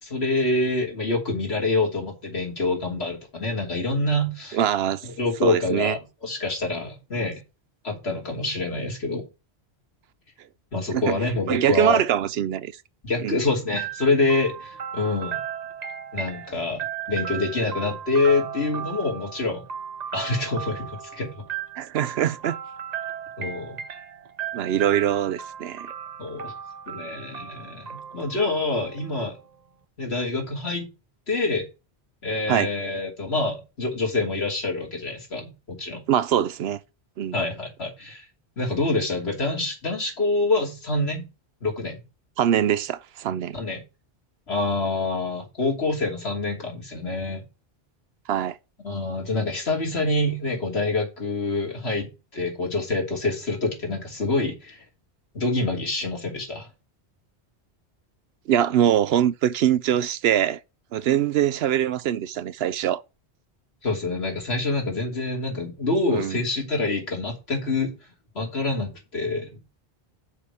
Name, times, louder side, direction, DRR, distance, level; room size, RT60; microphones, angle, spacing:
voice 1, 0.0-4.6 5.0-7.4 7.8-9.3 10.7-12.0 13.0-15.4 16.1-19.6 20.1-21.4 23.4-23.8 26.2-26.5 26.9-29.4 30.0-30.9 31.3-31.6 32.2-36.0 37.3-38.2 38.6-41.3 41.6-42.0 43.5-43.8 44.5-47.4 48.8-54.8 55.3-56.7 63.8-67.9 68.3-69.6, left 2 dB, 80° left, 3.2 m, -26 dB
voice 2, 4.5-5.1 5.4-5.9 10.9-11.2 11.5-12.7 13.2-13.4 21.8-22.6 24.5-25.9 32.5-32.7 36.1-36.8 37.2-37.4 42.4-43.6 48.3-48.6 58.5-60.6 60.9-63.0 66.1-66.4, right 10 dB, 75° right, 0.8 m, -23 dB
sound 1, 13.8-29.6, right 8 dB, 45° right, 0.7 m, -36 dB
6.7 x 5.0 x 6.9 m
omnidirectional pair, 1.1 m